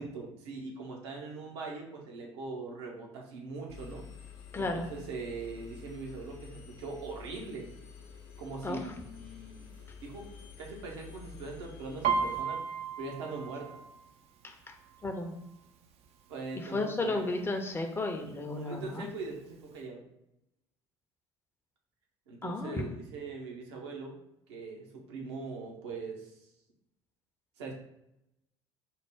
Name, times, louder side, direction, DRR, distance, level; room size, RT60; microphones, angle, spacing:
voice 1, 0.0-4.0 4.6-7.7 8.4-9.7 10.0-10.3 10.6-13.8 16.3-17.2 18.5-20.0 22.3-24.2 24.5-26.5 27.6-27.7, right 3 dB, 70° right, 0 dB, 0.8 m, -41 dB
Engine, 3.7-12.4, left 6 dB, 65° left, 0.8 m, -49 dB
voice 2, 4.5-4.9 8.6-8.9 14.4-14.7 15.0-15.3 16.6-19.1 22.4-22.9, left 2 dB, 15° left, 4 dB, 0.6 m, -33 dB
Piano, 12.0-15.7 16.0-16.4 16.8-17.4 18.0-18.1 18.3-19.4 19.7-19.8, right 5 dB, 45° right, 0.5 m, -35 dB
4.4 x 2.1 x 3.4 m, 0.85 s
figure-of-eight pair, 60°, 15 cm